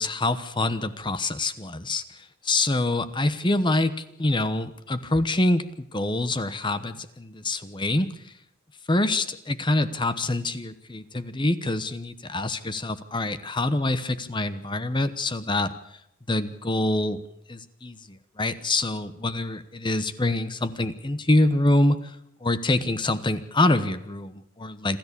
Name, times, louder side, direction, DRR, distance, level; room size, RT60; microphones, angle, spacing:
voice 1, 0.0-8.3 8.9-15.7 16.3-17.2 17.5-22.2 22.4-25.0, left 2 dB, 20° left, 13 dB, 1.0 m, -25 dB
27.0 x 13.5 x 8.5 m, 0.76 s
head